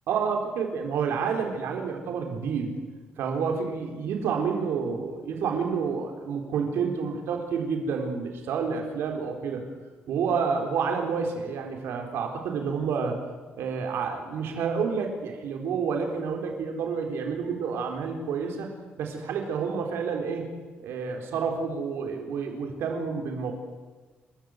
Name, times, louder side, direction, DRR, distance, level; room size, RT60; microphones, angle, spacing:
voice 1, 0.1-2.7 3.2-9.7 10.1-13.2 13.6-18.7 19.0-20.5 20.8-23.5, right 6 dB, 85° right, 3 dB, 4.1 m, -29 dB
29.0 x 14.0 x 8.0 m, 1.3 s
cardioid pair, 160°, 4 cm